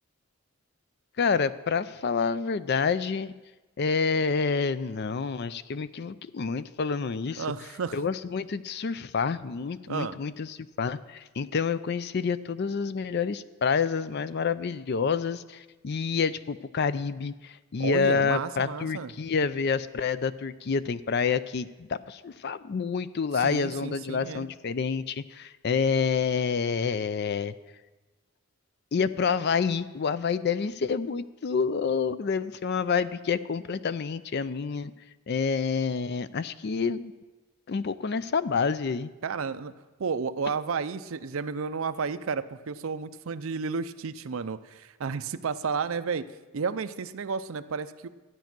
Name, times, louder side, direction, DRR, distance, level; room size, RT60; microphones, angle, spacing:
voice 1, 1.2-3.3 3.8-7.4 7.9-27.5 28.9-34.9 35.3-37.1 37.7-39.1, left 5 dB, 50° left, 15 dB, 0.4 m, -28 dB
voice 2, 7.4-8.0 9.9-10.2 17.8-19.1 23.3-24.5 39.2-39.7 40.0-46.3 46.5-48.1, right 5 dB, 65° right, 13 dB, 0.5 m, -32 dB
13.0 x 9.2 x 6.0 m, 1.2 s
head